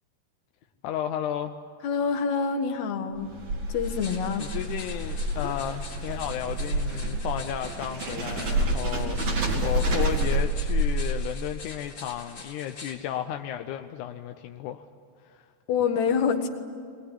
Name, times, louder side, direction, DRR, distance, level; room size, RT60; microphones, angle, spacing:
voice 1, 0.8-1.5 4.4-14.9 15.2-15.5, left 10 dB, 75° left, 6 dB, 1.9 m, -33 dB
voice 2, 1.8-3.3 3.7-4.5 5.4-5.5 15.7-16.5, left 6 dB, 60° left, 4 dB, 2.6 m, -26 dB
sound 1, 3.2-11.5, right 1 dB, 50° right, 3.6 m, -28 dB
sound 2, 3.8-13.0, left 4 dB, 40° left, 3.8 m, -45 dB
22.0 x 21.0 x 9.9 m, 2.3 s
omnidirectional pair, 4.1 m